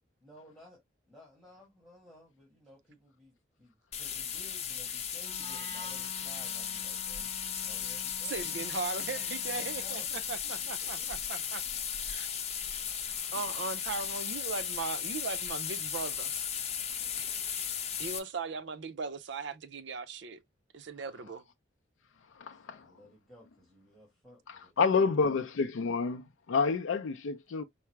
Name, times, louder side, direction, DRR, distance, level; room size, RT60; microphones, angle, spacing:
voice 1, 0.2-0.8 1.1-10.1 10.6-10.7 11.0-11.1 22.5-24.7, left 1 dB, ahead, 1.5 m, -56 dB
sound 1, 3.9-18.2, left 8 dB, 35° left, 0.7 m, -36 dB
Wind instrument woodwind instrument, 5.2-10.0, left 5 dB, 35° right, 1.9 m, -49 dB
voice 2, 8.3-10.0 10.3-11.6 12.1-12.3 13.1-16.3 18.0-20.4 20.7-21.4, right 4 dB, 65° right, 0.5 m, -38 dB
voice 3, 22.4-22.9 24.5-27.6, left 5 dB, 85° left, 0.4 m, -29 dB
4.7 x 2.0 x 4.5 m
head